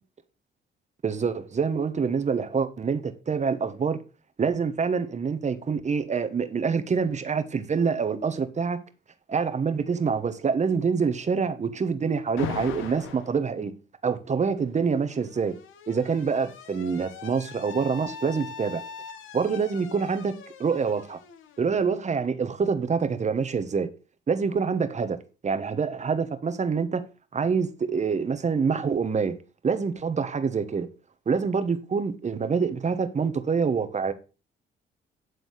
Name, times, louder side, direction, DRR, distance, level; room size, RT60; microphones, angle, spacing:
voice 1, 1.0-4.0 4.4-8.8 9.3-13.7 14.0-15.5 15.9-18.8 19.3-21.2 21.6-23.9 24.3-25.2 25.4-27.0 27.3-29.4 29.6-30.9 31.3-34.1, right 5 dB, 35° right, 1.2 m, -26 dB
Alarm, 12.4-13.3 14.6-22.3, left 7 dB, 85° left, 1.2 m, -41 dB
9.4 x 3.9 x 6.5 m
cardioid pair, 90°, 20 cm